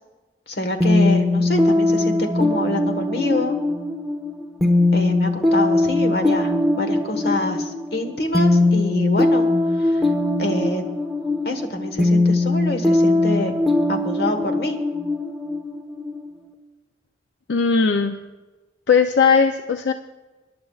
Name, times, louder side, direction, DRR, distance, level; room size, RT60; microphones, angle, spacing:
voice 1, 0.5-3.6 4.9-10.1 10.4-10.8 11.4-13.6 13.9-14.8, left 1 dB, 60° left, 5 dB, 1.4 m, -26 dB
sound 1, 0.8-16.4, left 2 dB, ahead, 1.1 m, -20 dB
voice 2, 17.5-18.2 18.9-19.9, left 5 dB, 80° left, 6 dB, 0.5 m, -18 dB
26.0 x 11.0 x 2.4 m, 1.2 s
head